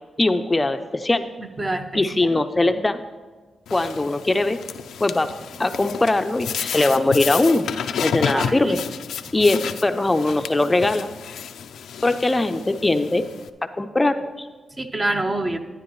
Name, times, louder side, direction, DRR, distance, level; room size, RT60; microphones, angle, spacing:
voice 1, 0.2-1.3 1.9-3.0 3.7-4.6 5.0-5.3 5.6-7.7 8.0-8.8 9.3-11.1 12.0-13.3 13.8-14.5, left 2 dB, 25° left, 9 dB, 0.5 m, -21 dB
voice 2, 1.4-2.3 8.3-8.8 14.8-15.6, right 2 dB, 30° right, 7 dB, 0.8 m, -26 dB
sound 1, 3.7-13.5, left 7 dB, 85° left, 0.4 m, -31 dB
12.5 x 9.5 x 3.1 m, 1.4 s
cardioid pair, 65°, 0 cm